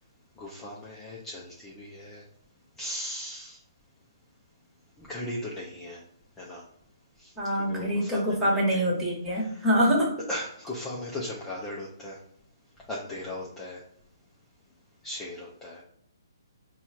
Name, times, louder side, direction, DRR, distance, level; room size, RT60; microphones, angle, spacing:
voice 1, 0.4-2.2 2.8-3.6 5.0-6.0 6.4-6.6 7.2-7.3 7.6-8.8 9.3-9.7 10.3-12.2 12.9-13.8 15.0-15.8, left 1 dB, 10° left, -5 dB, 0.8 m, -37 dB
voice 2, 7.4-10.1, equal, 10° right, -5 dB, 1.7 m, -25 dB
4.3 x 2.4 x 4.3 m, 0.74 s
figure-of-eight pair, 135°, 2 cm